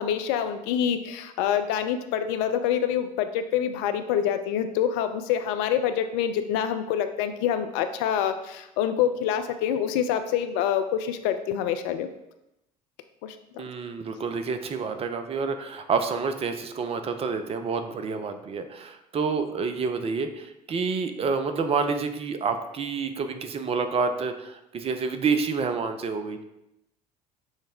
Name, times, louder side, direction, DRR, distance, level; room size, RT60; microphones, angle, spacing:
voice 1, 0.0-12.1 13.2-13.4, left 9 dB, 55° left, 9 dB, 0.4 m, -26 dB
voice 2, 13.6-26.4, right 5 dB, 30° right, 8 dB, 0.5 m, -28 dB
6.2 x 2.1 x 3.6 m, 0.89 s
figure-of-eight pair, 65°, 21 cm